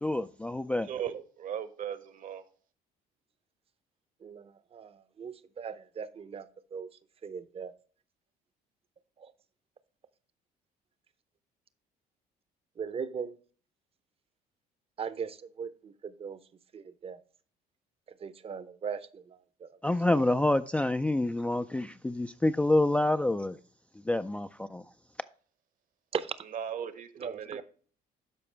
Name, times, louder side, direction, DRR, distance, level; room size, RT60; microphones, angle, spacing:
voice 1, 0.0-0.9 19.8-23.6 24.1-24.8, left 1 dB, 10° left, 0.3 m, -27 dB
voice 2, 0.9-2.4 26.4-27.6, right 9 dB, 50° right, 1.0 m, -37 dB
voice 3, 4.2-6.5 6.7-6.9 7.2-7.7 12.8-13.3 15.0-16.4 16.7-17.2 18.2-19.2 19.6-19.7 20.1-20.2 26.1-26.3 27.2-27.6, right 6 dB, 35° right, 0.7 m, -38 dB
12.0 x 4.8 x 3.3 m
cardioid pair, 110°, 17 cm